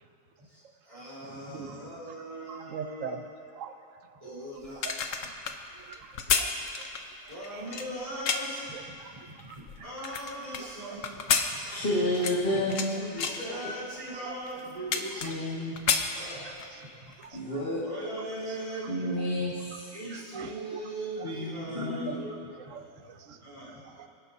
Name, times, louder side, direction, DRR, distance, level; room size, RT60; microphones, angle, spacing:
voice 1, 0.4-3.3 4.2-4.9 7.3-11.9 12.5-15.3 16.1-17.1 17.8-19.0 19.9-23.0 23.4-23.8, right 1 dB, 30° right, -12 dB, 3.7 m, -40 dB
voice 2, 2.5-3.2 3.5-3.7 4.2-4.3 4.8-5.3 5.8-6.1 6.4-6.5 6.8-6.9 7.5-7.6 8.7-9.1 9.5-9.6 10.6-10.7 11.6-11.7 13.2-13.3 14.2-14.4 16.0-16.1 17.2-17.4 20.1-20.8 21.2-21.3 21.8-22.2 22.6-23.4 23.8-24.1, right 8 dB, 70° right, 8 dB, 0.9 m, -42 dB
sound 1, 4.6-8.6 9.2-10.6 11.0-12.9 13.2-13.5 14.1-14.2 14.5-15.5 15.8-16.8 17.1-17.3, left 6 dB, 65° left, 1.1 m, -30 dB
voice 3, 11.7-12.7 15.2-15.8 17.3-17.8 18.9-19.9 21.2-22.1, left 1 dB, 40° left, -7 dB, 2.0 m, -30 dB
25.0 x 11.0 x 2.7 m, 2.6 s
omnidirectional pair, 1.5 m